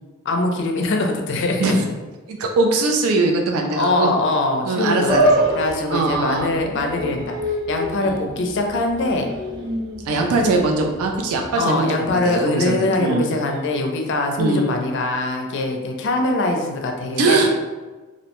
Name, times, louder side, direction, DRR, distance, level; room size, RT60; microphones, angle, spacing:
voice 1, 0.3-1.8 3.7-9.3 11.6-17.6, left 2 dB, 55° left, 3 dB, 0.4 m, -22 dB
voice 2, 2.3-4.1 4.6-5.3 5.9-6.5 8.0-8.2 10.1-12.0 12.2-13.2 14.4-14.7 17.2-17.5, right 3 dB, 85° right, 2 dB, 0.3 m, -21 dB
sound 1, 5.1-11.5, equal, 20° right, 0.4 m, -25 dB
2.6 x 2.1 x 2.9 m, 1.2 s
head